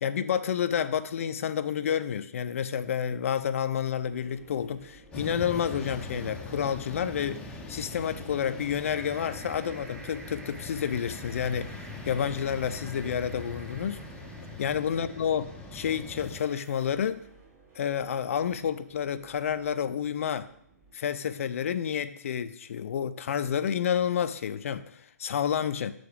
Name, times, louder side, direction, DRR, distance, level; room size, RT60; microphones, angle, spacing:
voice 1, 0.0-11.8 12.1-14.0 14.6-17.2 17.8-20.5 20.9-25.9, left 8 dB, 55° left, 0.5 m, -30 dB
sound 1, 4.0-20.9, right 2 dB, 25° right, 2.1 m, -56 dB
sound 2, 5.1-16.4, left 2 dB, 10° left, 0.7 m, -42 dB
sound 3, 8.8-17.0, right 2 dB, 70° right, 1.1 m, -51 dB
6.6 x 3.9 x 5.1 m
figure-of-eight pair, 125°, 9 cm